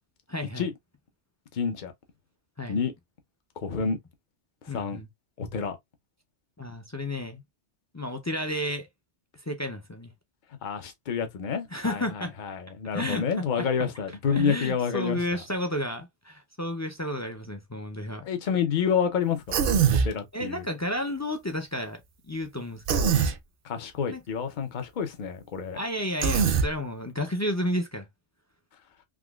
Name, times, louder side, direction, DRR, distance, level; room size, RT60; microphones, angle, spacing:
voice 1, 0.3-0.7 2.6-2.8 3.8-3.9 4.7-5.1 6.6-7.4 7.9-8.9 9.5-10.1 11.7-12.3 12.9-13.2 13.6-13.9 14.3-18.2 20.3-22.0 22.3-23.2 24.1-24.2 25.7-28.1, left 1 dB, 25° left, 0.4 m, -32 dB
voice 2, 1.5-1.9 2.7-2.9 3.6-4.0 4.6-5.0 5.4-5.8 10.6-15.4 18.2-19.6 19.9-20.6 23.6-25.8, left 6 dB, 50° left, 0.8 m, -29 dB
Human voice, 19.5-20.1 22.9-23.3 26.2-26.7, right 6 dB, 60° right, 0.7 m, -22 dB
3.7 x 2.9 x 2.3 m
omnidirectional pair, 1.2 m